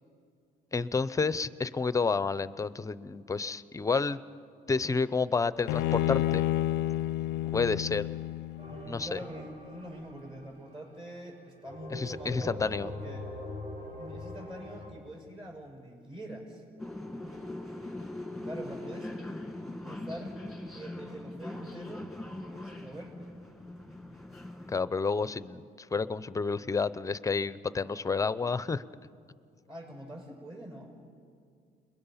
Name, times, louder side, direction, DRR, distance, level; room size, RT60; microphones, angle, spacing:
voice 1, 0.7-4.2 4.7-6.4 7.5-8.1 8.9-9.2 11.9-12.9 24.7-28.8, left 4 dB, 20° left, 16 dB, 0.6 m, -30 dB
Bowed string instrument, 5.7-9.0, left 14 dB, 85° left, 0.4 m, -30 dB
sound 1, 8.6-11.0 11.6-14.9, left 2 dB, 60° right, 4.5 m, -43 dB
voice 2, 8.7-13.3 13.9-16.6 18.4-19.1 19.8-20.4 20.7-22.1 22.6-23.3 29.7-30.9, right 1 dB, 30° right, 0 dB, 6.4 m, -44 dB
sound 2, 16.8-24.8, left 1 dB, ahead, 1.9 m, -41 dB
30.0 x 21.5 x 5.7 m, 2.4 s
cardioid pair, 110°, 17 cm